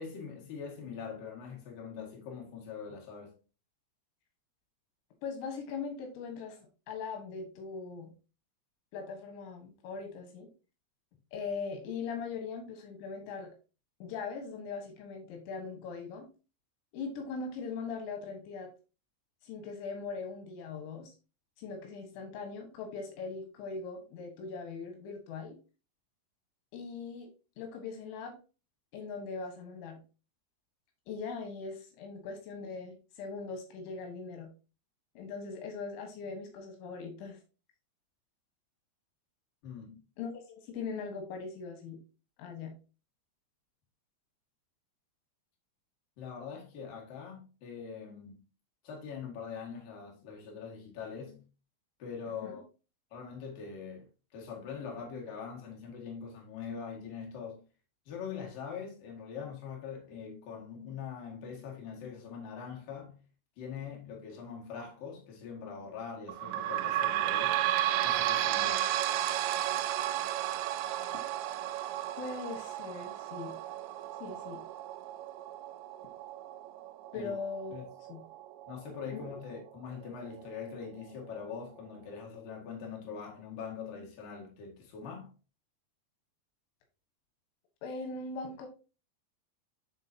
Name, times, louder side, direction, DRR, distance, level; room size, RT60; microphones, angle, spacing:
voice 1, 0.0-3.3 39.6-40.0 46.2-48.4 48.8-51.4 52.0-52.6 53.1-54.1 54.3-57.6 58.1-63.2 63.6-67.6 68.0-68.9 77.1-77.3 77.7-77.8 78.7-85.3, left 6 dB, 55° left, 3.4 m, -43 dB
voice 2, 5.2-6.6 6.9-8.1 8.9-10.5 11.3-13.5 14.0-16.3 16.9-18.7 19.4-21.1 21.6-25.6 26.7-27.3 27.6-28.4 28.9-30.0 31.1-34.5 35.2-37.4 40.2-42.0 42.4-42.7 52.4-52.6 72.2-73.6 74.2-74.6 77.1-78.2 79.1-79.2 87.8-88.7, left 4 dB, 85° left, 3.8 m, -40 dB
sound 1, 66.3-79.4 80.0-80.1 80.4-80.5 81.3-81.4, right 13 dB, 85° right, 2.8 m, -33 dB
11.0 x 3.8 x 2.8 m
omnidirectional pair, 5.1 m